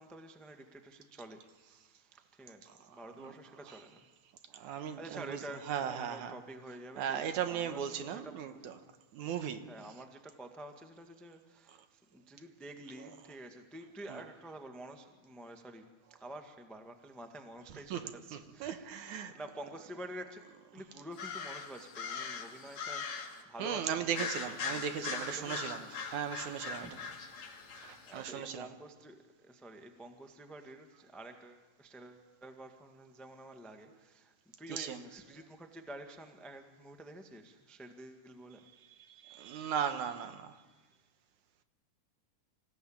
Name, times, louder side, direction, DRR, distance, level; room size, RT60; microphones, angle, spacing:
voice 1, 0.0-4.1 4.5-7.8 8.1-8.9 9.3-20.4 20.7-26.2 26.7-27.2 28.1-38.6 39.9-40.7, right 1 dB, ahead, 0.7 m, -49 dB
voice 2, 2.9-3.3 3.7-3.8 4.5-5.4 5.7-6.4 7.0-8.7 9.1-9.7 13.0-13.1 14.1-14.2 17.9-19.4 23.6-25.8 26.1-27.0 27.8-28.7 34.7-35.0 39.1-40.6, right 8 dB, 70° right, 2.4 m, -37 dB
sound 1, 21.1-23.4 24.1-28.1, left 5 dB, 60° left, 3.1 m, -41 dB
26.0 x 16.0 x 8.8 m
omnidirectional pair, 3.7 m